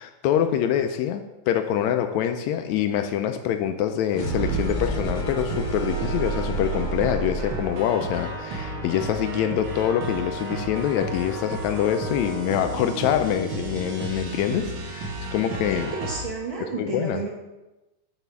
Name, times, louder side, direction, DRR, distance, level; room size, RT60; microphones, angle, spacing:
voice 1, 0.0-15.9 16.6-17.2, left 10 dB, 85° left, 7 dB, 1.6 m, -25 dB
sound 1, 4.1-9.9, right 3 dB, 45° left, 1.6 m, -32 dB
sound 2, 4.1-16.2, right 2 dB, 55° right, 1.6 m, -33 dB
voice 2, 15.4-17.3, right 4 dB, 75° right, -2 dB, 1.1 m, -32 dB
8.0 x 4.2 x 6.8 m, 1.0 s
omnidirectional pair, 3.7 m